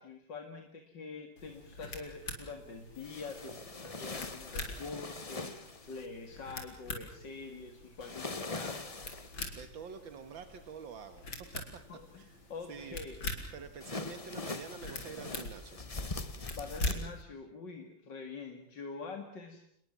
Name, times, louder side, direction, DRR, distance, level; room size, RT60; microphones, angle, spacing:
voice 1, 0.0-8.9 11.9-13.2 16.6-19.6, left 4 dB, 65° left, 6 dB, 2.8 m, -45 dB
sound 1, 1.4-17.2, left 2 dB, 80° left, 4.9 m, -45 dB
sound 2, 2.9-6.1 8.0-9.5 13.8-16.9, left 3 dB, 20° left, 1.1 m, -41 dB
voice 2, 9.5-11.2 11.5-11.8 12.1-12.4 12.7-13.0 13.5-15.8, right 6 dB, 80° right, 8 dB, 2.3 m, -47 dB
28.5 x 21.5 x 7.4 m, 0.68 s
omnidirectional pair, 2.1 m